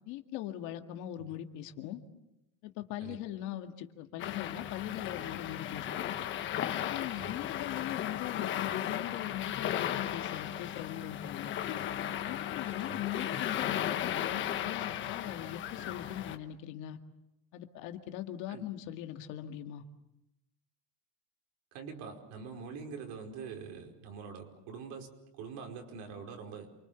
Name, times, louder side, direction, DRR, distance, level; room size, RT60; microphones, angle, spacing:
voice 1, 0.0-2.0 2.6-6.2 6.7-11.6 12.2-17.0 17.5-19.8, left 12 dB, 55° left, 5 dB, 2.1 m, -40 dB
sound 1, 4.2-16.4, left 11 dB, 35° left, 1.3 m, -36 dB
voice 2, 21.7-26.7, right 5 dB, 55° right, 3 dB, 5.1 m, -44 dB
28.5 x 24.5 x 7.1 m, 0.89 s
cardioid pair, 170°, 36 cm